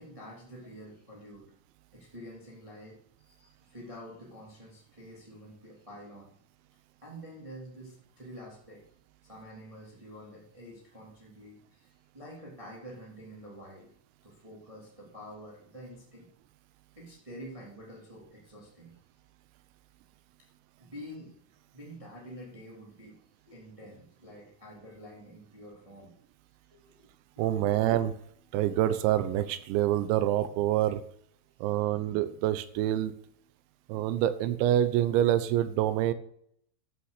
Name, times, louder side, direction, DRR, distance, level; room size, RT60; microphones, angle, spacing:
voice 1, 0.0-1.5 1.9-6.3 7.0-8.8 9.2-13.9 14.2-16.3 16.9-19.0 20.8-21.3 21.7-26.1 26.7-27.8, equal, 15° right, -3 dB, 1.2 m, -48 dB
voice 2, 27.4-28.1 28.5-31.0 31.6-33.1 33.9-36.1, right 12 dB, 80° right, 13 dB, 2.8 m, -26 dB
13.0 x 6.0 x 6.6 m, 0.68 s
omnidirectional pair, 5.7 m